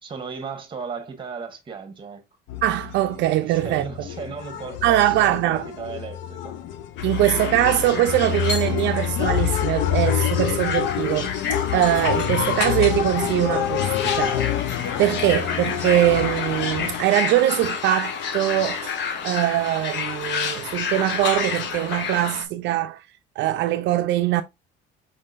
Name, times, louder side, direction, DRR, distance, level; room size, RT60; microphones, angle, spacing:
voice 1, 0.0-2.2 3.4-6.5, right 5 dB, 25° right, 1.1 m, -35 dB
sound 1, 2.5-17.0, left 11 dB, 85° left, 0.5 m, -27 dB
voice 2, 2.6-3.8 4.8-5.7 7.0-14.6 15.0-18.9 19.2-23.0 23.4-24.4, right 14 dB, 70° right, 0.4 m, -22 dB
sound 2, 7.0-22.4, left 6 dB, 65° left, 0.9 m, -30 dB
4.8 x 3.7 x 2.4 m
cardioid pair, 135°, 19 cm